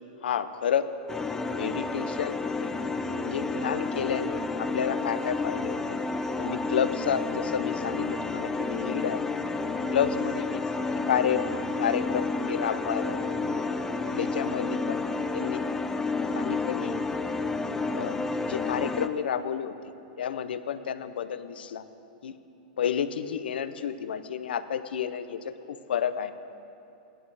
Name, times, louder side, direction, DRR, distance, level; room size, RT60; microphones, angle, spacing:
voice 1, 0.2-1.2 1.5-2.7 3.2-6.0 6.4-9.3 9.9-10.6 11.1-13.5 14.1-15.0 15.3-15.6 16.3-17.0 17.9-19.8 20.2-21.9 22.2-22.4 22.8-26.3, left 8 dB, 90° left, 11 dB, 0.6 m, -31 dB
sound 1, 1.1-19.1, left 3 dB, 10° left, 0.4 m, -30 dB
15.0 x 11.0 x 4.8 m, 2.8 s
hypercardioid pair, 140°, 5 cm